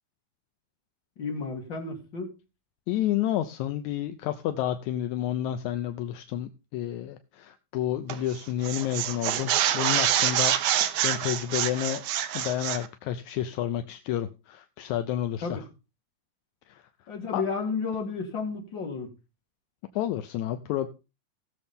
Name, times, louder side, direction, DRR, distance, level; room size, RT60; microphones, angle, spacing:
voice 1, 1.2-2.4 15.4-15.6 17.1-19.1, left 4 dB, 40° left, 1 dB, 3.1 m, -32 dB
voice 2, 2.9-12.0 12.3-15.6 16.7-16.8 17.3-17.4 20.0-20.9, left 12 dB, 80° left, 9 dB, 2.0 m, -30 dB
sound 1, 8.1-8.4 8.6-12.9, right 11 dB, 80° right, 2.4 m, -26 dB
18.0 x 6.9 x 3.6 m, 0.29 s
omnidirectional pair, 3.4 m